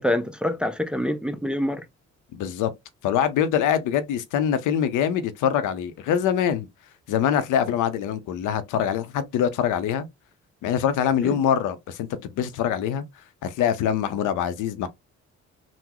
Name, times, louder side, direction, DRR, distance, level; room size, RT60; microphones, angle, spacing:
voice 1, 0.0-1.8 11.2-11.4, left 1 dB, 5° right, 0.4 m, -26 dB
voice 2, 2.3-2.7 3.0-6.7 7.1-10.1 10.6-13.0 13.4-14.9, left 9 dB, 85° left, 0.6 m, -24 dB
3.7 x 2.0 x 2.9 m
cardioid pair, 90°, 30 cm